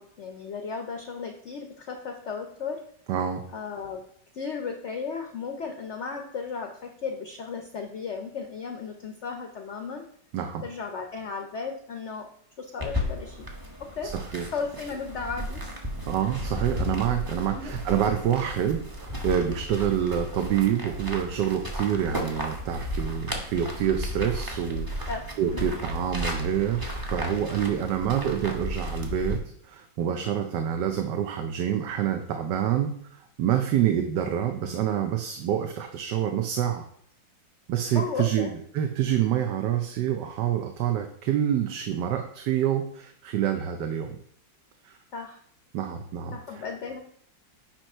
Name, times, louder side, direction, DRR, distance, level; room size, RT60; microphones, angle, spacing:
voice 1, 0.0-2.8 3.5-4.0 4.3-10.0 10.6-12.2 12.6-13.5 14.0-14.1 14.5-15.6 17.5-17.8 25.1-25.2 25.5-25.7 37.9-38.5 45.1-45.4 46.3-47.0, left 5 dB, 55° left, 4 dB, 0.8 m, -35 dB
voice 2, 3.1-3.4 10.3-10.6 14.1-14.4 16.1-25.1 25.4-29.4 29.6-36.8 37.7-44.2 44.8-45.0 45.7-46.6, right 9 dB, 70° right, 5 dB, 1.3 m, -27 dB
sound 1, 12.8-29.4, equal, 15° right, 0.7 m, -34 dB
8.9 x 3.1 x 5.4 m, 0.63 s
omnidirectional pair, 2.0 m